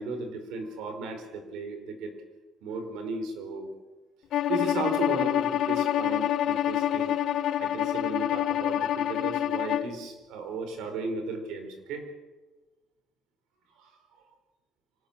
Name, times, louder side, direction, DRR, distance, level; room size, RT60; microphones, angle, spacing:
voice 1, 0.0-2.2 2.6-3.7 4.5-7.2 7.6-12.1 13.8-13.9, right 3 dB, 75° right, 6 dB, 4.9 m, -35 dB
Bowed string instrument, 4.3-9.9, left 11 dB, 50° left, 0.9 m, -27 dB
25.0 x 19.0 x 7.5 m, 1.2 s
cardioid pair, 170°, 0 cm